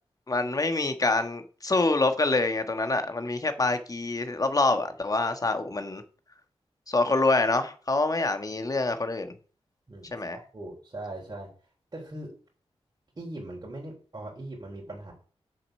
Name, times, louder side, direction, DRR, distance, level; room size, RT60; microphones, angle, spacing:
voice 1, 0.3-6.0 6.9-9.3 10.1-10.4, left 3 dB, 35° left, 1.5 m, -26 dB
voice 2, 10.5-11.5 11.9-12.3 13.2-15.1, right 1 dB, 35° right, 3.6 m, -40 dB
7.8 x 6.8 x 6.6 m
wide cardioid pair, 100°, 11 cm